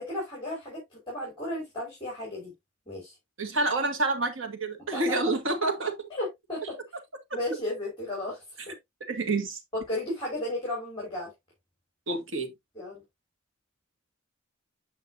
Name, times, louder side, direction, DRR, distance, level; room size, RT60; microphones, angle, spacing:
voice 1, 0.0-2.5 2.9-3.1 4.9-5.2 6.1-6.7 7.3-8.8 9.7-11.3 12.7-13.0, left 1 dB, 25° left, 4.9 m, -34 dB
voice 2, 3.4-5.9 9.1-9.6 12.1-12.5, right 2 dB, 70° right, 2.0 m, -28 dB
8.7 x 5.8 x 2.6 m
head